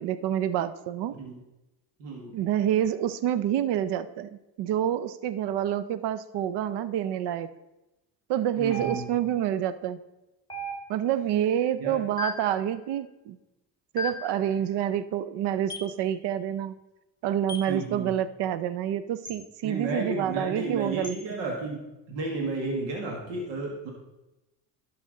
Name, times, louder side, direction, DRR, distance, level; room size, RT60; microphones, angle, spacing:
voice 1, 0.0-1.2 2.3-4.3 4.6-7.5 8.3-10.0 10.9-13.4 13.9-16.7 17.2-21.2, right 10 dB, 70° right, 14 dB, 0.7 m, -28 dB
voice 2, 2.0-2.3 8.6-9.0 11.8-12.0 17.7-18.1 19.6-21.8 22.1-23.9, right 3 dB, 85° right, 0 dB, 1.8 m, -32 dB
sound 1, 8.7-9.4 10.5-11.2 12.2-12.6 14.0-14.4 15.7-16.0 17.5-17.8 19.2-19.4 21.0-21.2, left 1 dB, 10° left, 1.1 m, -36 dB
11.5 x 5.8 x 3.8 m, 0.97 s
supercardioid pair, 75°, 43 cm